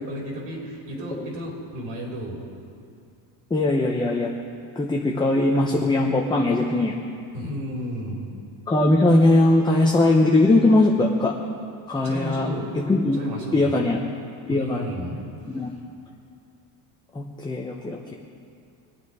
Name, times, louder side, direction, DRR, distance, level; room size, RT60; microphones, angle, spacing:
voice 1, 0.0-2.5 7.3-8.2 12.0-12.6 13.1-13.7 14.5-15.2 15.5-15.6, equal, 75° right, -2 dB, 4.6 m, -33 dB
voice 2, 3.5-4.3 4.8-7.0 8.7-11.3 11.9-12.5 12.7-13.2 13.5-14.0 14.5-14.9 15.5-15.7 17.1-18.1, left 2 dB, 10° left, -1 dB, 0.8 m, -20 dB
22.5 x 9.2 x 4.9 m, 2.4 s
cardioid pair, 140°, 47 cm